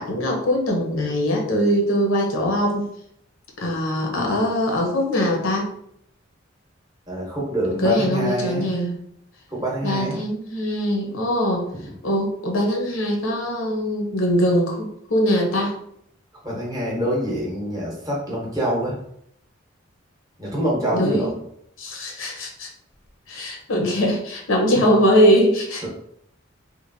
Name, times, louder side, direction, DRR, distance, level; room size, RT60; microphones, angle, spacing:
voice 1, 0.0-2.8 3.6-5.7 7.8-9.0 9.8-11.6 12.0-15.7 20.9-21.3 21.8-22.7 23.3-25.9, equal, 75° left, 0 dB, 0.7 m, -21 dB
voice 2, 7.1-8.7 9.5-10.2 16.4-19.0 20.4-21.3 25.8-25.9, equal, 20° right, -4 dB, 0.9 m, -25 dB
2.9 x 2.5 x 2.6 m, 0.70 s
head